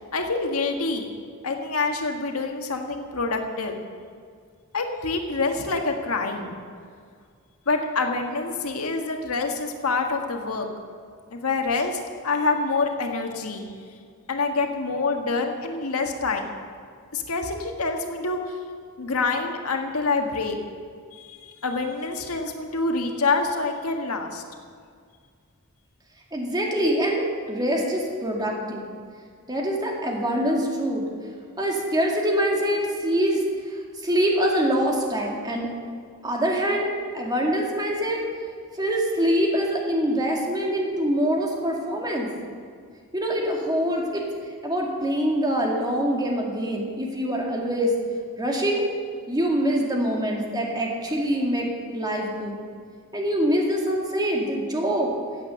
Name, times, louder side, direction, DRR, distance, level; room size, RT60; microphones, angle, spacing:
voice 1, 0.1-1.1 1.4-3.8 4.7-6.6 7.7-10.7 11.3-13.7 14.3-16.5 17.1-18.5 19.0-20.6 21.1-24.4, left 3 dB, 90° left, 3 dB, 1.6 m, -26 dB
voice 2, 26.3-28.8 29.5-31.1 31.6-33.4 33.7-35.7 36.2-38.2 38.8-42.3 43.1-44.2 44.6-47.9 48.4-48.8 49.3-51.7 51.9-52.6 53.1-55.1, equal, 20° right, -1 dB, 2.1 m, -24 dB
15.5 x 8.4 x 7.0 m, 2.1 s
head